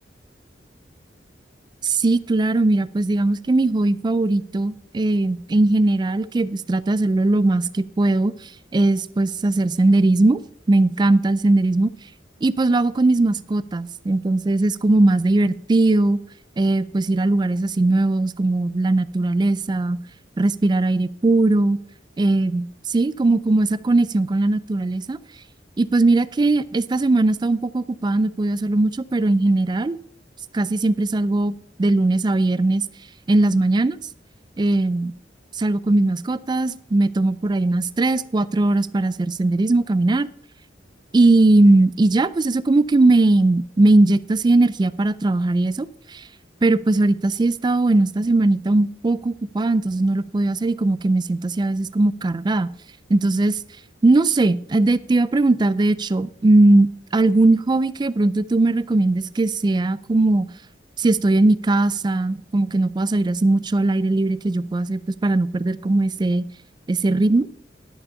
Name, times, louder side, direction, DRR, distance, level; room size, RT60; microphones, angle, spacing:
voice 1, 1.8-10.4 10.7-11.9 12.4-16.2 16.6-20.0 20.4-21.8 22.2-25.2 25.8-30.0 30.5-32.8 33.3-34.0 34.6-35.1 35.5-40.3 41.1-46.3 46.6-52.7 53.1-53.6 54.0-60.5 61.0-66.5 66.9-67.5, right 2 dB, 25° right, 17 dB, 0.3 m, -19 dB
11.0 x 7.0 x 5.4 m, 0.67 s
head